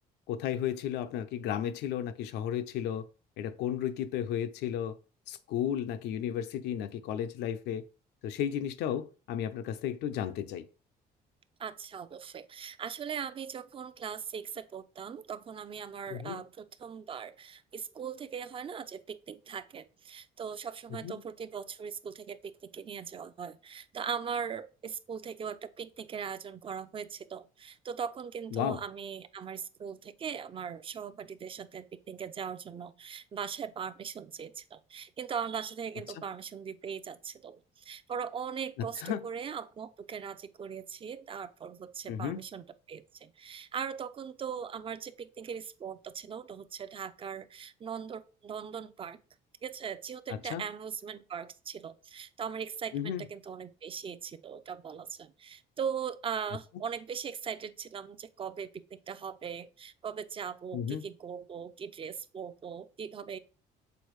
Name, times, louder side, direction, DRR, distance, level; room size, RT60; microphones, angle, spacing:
voice 1, 0.3-3.0 3.4-4.9 5.3-7.8 8.2-10.6 16.1-16.4 21.0-21.2 28.5-28.8 38.8-39.2 42.1-42.4 50.3-50.6 52.9-53.2 60.7-61.0, left 9 dB, 85° left, 0.6 m, -33 dB
voice 2, 11.6-49.2 49.6-63.4, right 7 dB, 30° right, 0.5 m, -40 dB
7.0 x 4.3 x 3.1 m
cardioid pair, 110°, 17 cm